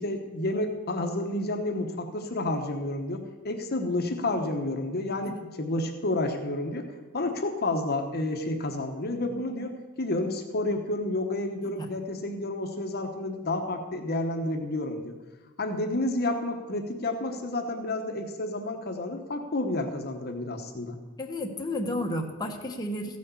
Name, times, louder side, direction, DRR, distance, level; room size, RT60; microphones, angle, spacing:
voice 1, 0.0-6.9 7.1-15.1 15.6-21.0, left 2 dB, 50° left, 5 dB, 1.0 m, -30 dB
voice 2, 21.2-23.2, left 1 dB, 20° left, 1 dB, 1.2 m, -32 dB
15.0 x 6.4 x 7.1 m, 1.2 s
head